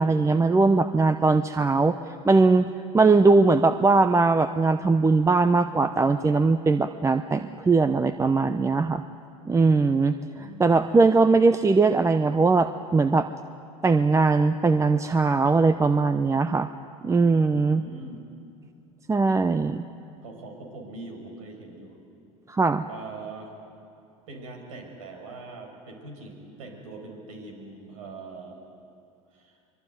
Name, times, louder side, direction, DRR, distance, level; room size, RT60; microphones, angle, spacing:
voice 1, 0.0-1.9 2.2-2.7 2.9-9.0 9.5-13.3 13.8-16.7 17.0-17.8 19.1-19.8 22.5-22.8, right 3 dB, 15° right, 10 dB, 0.8 m, -20 dB
voice 2, 10.3-11.4 17.5-18.2 20.2-22.0 22.9-23.5 24.3-28.6 29.3-29.6, right 3 dB, 80° right, 3 dB, 5.7 m, -42 dB
24.5 x 22.5 x 9.3 m, 2.7 s
hypercardioid pair, 85°, 17 cm